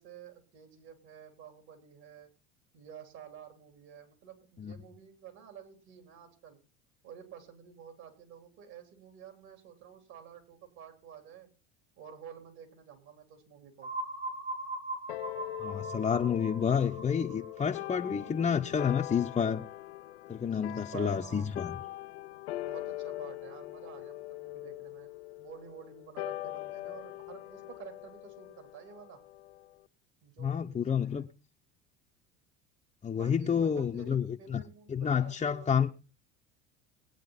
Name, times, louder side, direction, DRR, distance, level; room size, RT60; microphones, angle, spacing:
voice 1, 0.0-2.3 2.7-6.6 7.0-11.5 12.0-13.9 20.5-21.5 22.6-25.1 25.4-29.2 30.2-31.3 33.1-35.7, right 8 dB, 60° right, 3.8 m, -50 dB
sound 1, 13.8-19.5, right 2 dB, 85° right, 4.3 m, -41 dB
sound 2, 15.1-29.8, left 16 dB, 85° left, 0.6 m, -42 dB
voice 2, 15.6-19.6 20.3-21.8 30.4-31.3 33.0-34.6 34.9-35.9, left 7 dB, 20° left, 0.8 m, -29 dB
20.0 x 9.0 x 4.1 m
hypercardioid pair, 80°, 32 cm